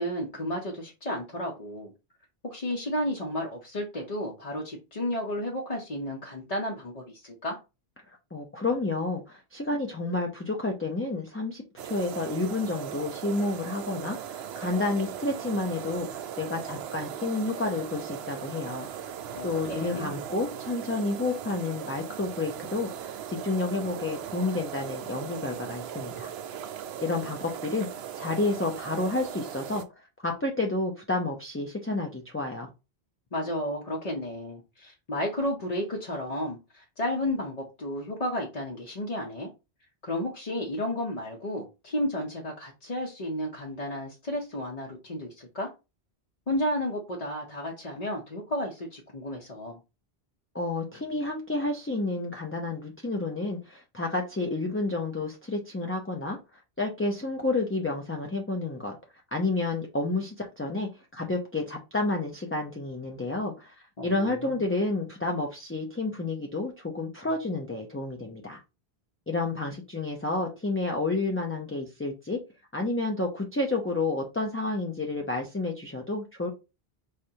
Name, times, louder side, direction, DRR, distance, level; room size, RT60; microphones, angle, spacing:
voice 1, 0.0-1.9 2.4-7.6 19.3-20.2 33.3-39.5 40.0-45.7 46.5-49.8 64.0-64.8, left 1 dB, 40° left, -1 dB, 0.8 m, -32 dB
voice 2, 8.3-18.9 19.4-26.3 27.0-27.9 28.1-29.8 30.2-32.7 50.5-59.0 59.3-63.8 64.0-68.6 69.3-72.4 72.7-76.5, left 2 dB, 15° left, 0 dB, 0.5 m, -30 dB
sound 1, 11.8-29.8, right 9 dB, 75° right, 0.8 m, -38 dB
5.0 x 3.3 x 2.8 m, 0.27 s
omnidirectional pair, 1.1 m